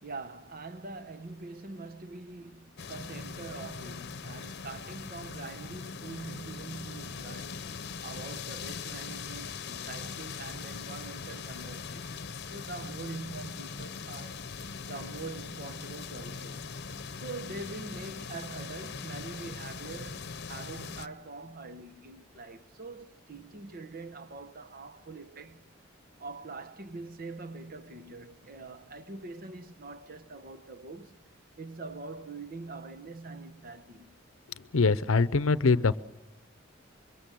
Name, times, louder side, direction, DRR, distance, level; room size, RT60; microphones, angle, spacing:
voice 1, 0.0-14.5 14.9-16.8 17.2-25.7 26.2-31.2 31.6-34.2, right 3 dB, 45° right, 1.1 m, -44 dB
sound 1, 2.8-21.1, left 5 dB, 55° left, 0.9 m, -41 dB
voice 2, 34.7-36.0, left 4 dB, 85° left, 0.7 m, -23 dB
25.5 x 23.0 x 7.6 m
head